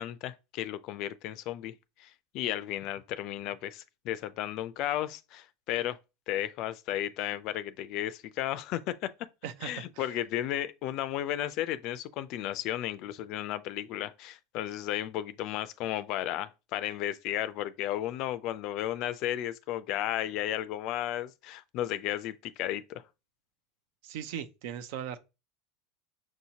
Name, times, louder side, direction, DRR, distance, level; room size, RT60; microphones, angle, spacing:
voice 1, 0.0-1.7 2.0-6.0 6.3-9.1 9.6-23.0, left 12 dB, 55° left, 0.3 m, -34 dB
voice 2, 9.4-10.1 24.0-25.2, right 9 dB, 70° right, 0.4 m, -39 dB
6.0 x 2.8 x 2.8 m
hypercardioid pair, 100°, 0 cm